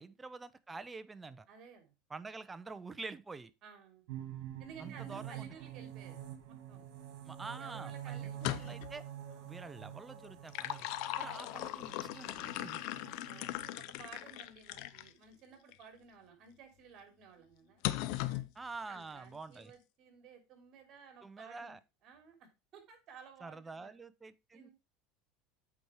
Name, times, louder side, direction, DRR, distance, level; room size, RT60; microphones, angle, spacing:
voice 1, 0.0-1.5 2.1-3.5 4.8-5.5 7.2-9.1 9.4-10.9 11.2-12.8 18.5-19.7 21.2-21.8 23.4-24.7, right 4 dB, 15° right, 0.6 m, -47 dB
voice 2, 1.5-1.9 3.6-4.0 4.6-6.8 7.6-8.6 9.3-9.5 13.2-13.5 13.9-17.8 18.2-18.4 18.9-23.9 24.5-24.7, right 6 dB, 45° right, 3.2 m, -56 dB
sound 1, 4.1-13.7, right 11 dB, 65° right, 2.0 m, -47 dB
sound 2, 8.3-9.0 10.2-15.1 15.7-15.8 17.8-18.5, left 15 dB, 65° left, 0.6 m, -38 dB
8.6 x 4.8 x 4.6 m
supercardioid pair, 120°, 0 cm